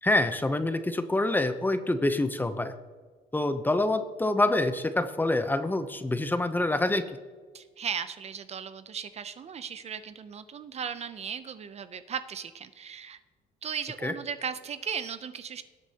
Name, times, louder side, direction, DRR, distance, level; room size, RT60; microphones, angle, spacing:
voice 1, 0.0-2.7 3.3-7.0 14.0-14.1, left 2 dB, 10° left, 10 dB, 0.7 m, -26 dB
voice 2, 7.5-13.2 13.6-15.6, right 7 dB, 40° right, 12 dB, 0.6 m, -36 dB
18.5 x 8.2 x 2.9 m, 1.5 s
cardioid pair, 110°, 17 cm